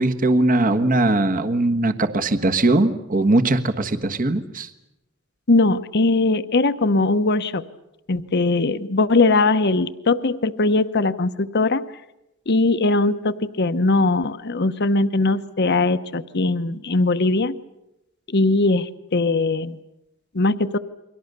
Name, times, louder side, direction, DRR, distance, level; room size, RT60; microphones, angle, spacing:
voice 1, 0.0-4.7, right 2 dB, 40° right, 8 dB, 1.4 m, -20 dB
voice 2, 5.5-7.6 8.1-11.8 12.5-17.6 18.3-19.8 20.3-20.8, left 3 dB, 55° left, 11 dB, 1.0 m, -20 dB
29.5 x 23.5 x 6.8 m, 0.90 s
head